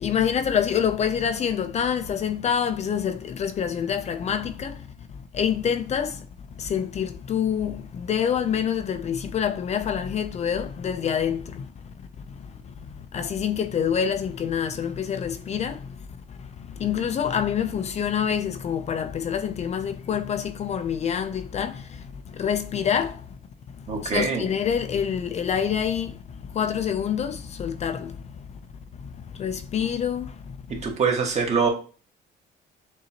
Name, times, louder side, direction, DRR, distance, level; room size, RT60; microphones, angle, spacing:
voice 1, 0.0-4.7 5.3-6.1 6.6-7.8 8.1-11.7 13.1-15.8 16.8-21.7 22.4-23.1 24.1-26.1 26.6-28.1 29.4-30.2, left 8 dB, 40° left, 0.5 m, -26 dB
voice 2, 23.9-24.5 30.7-31.7, right 5 dB, 40° right, 1.6 m, -24 dB
6.8 x 2.7 x 2.9 m
cardioid pair, 110°, 17 cm